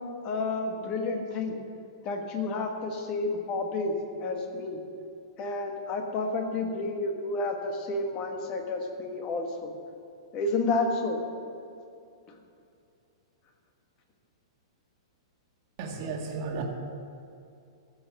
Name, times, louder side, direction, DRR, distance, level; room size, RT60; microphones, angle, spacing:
voice 1, 0.2-1.6 2.0-4.8 5.4-9.7 10.3-11.2, left 3 dB, 25° left, 3 dB, 1.4 m, -30 dB
voice 2, 15.8-16.6, right 4 dB, 35° right, 1 dB, 1.7 m, -34 dB
15.0 x 6.9 x 7.1 m, 2.5 s
hypercardioid pair, 165°, 3 cm